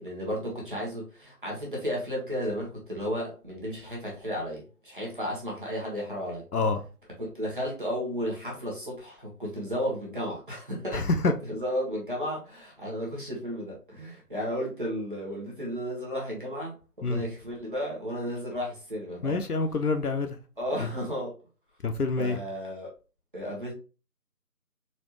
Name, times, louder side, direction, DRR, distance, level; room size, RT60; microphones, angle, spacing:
voice 1, 0.0-6.4 7.3-11.1 11.4-19.4 20.6-21.3 22.2-22.9 23.3-23.7, equal, 35° right, 1.1 m, -33 dB
voice 2, 10.9-11.3 17.0-17.2 19.2-20.4 20.8-20.9 21.8-22.4, left 3 dB, 75° left, 0.7 m, -26 dB
4.2 x 2.3 x 2.9 m
figure-of-eight pair, 160°, 46 cm